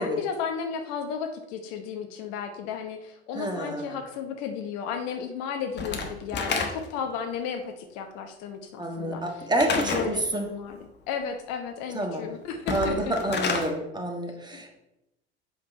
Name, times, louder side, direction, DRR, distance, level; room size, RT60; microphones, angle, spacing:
voice 1, 0.0-9.4 9.7-10.8 11.1-13.1 14.5-14.6, left 7 dB, 50° left, 6 dB, 1.0 m, -34 dB
voice 2, 3.3-4.0 8.8-10.5 11.9-12.2 12.7-14.8, right 1 dB, 10° right, 2 dB, 1.4 m, -28 dB
Slam / Wood, 5.8-7.1 9.6-10.2 12.5-13.7, left 4 dB, 30° left, 1.3 m, -29 dB
7.9 x 5.5 x 4.3 m, 0.90 s
figure-of-eight pair, 70°, 34 cm